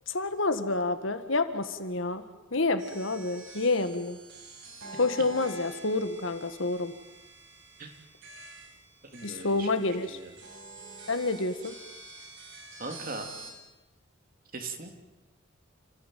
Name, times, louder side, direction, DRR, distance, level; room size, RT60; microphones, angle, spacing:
voice 1, 0.1-2.2 2.5-4.2 5.0-6.9 9.2-10.2 11.1-11.7, left 3 dB, 70° left, 9 dB, 1.8 m, -28 dB
sound 1, 2.8-13.5, right 2 dB, 70° right, 7.3 m, -47 dB
voice 2, 9.1-9.7 10.1-10.3 12.8-13.3 14.5-14.9, right 3 dB, 45° right, 4 dB, 3.1 m, -39 dB
29.0 x 15.5 x 9.3 m, 1.1 s
head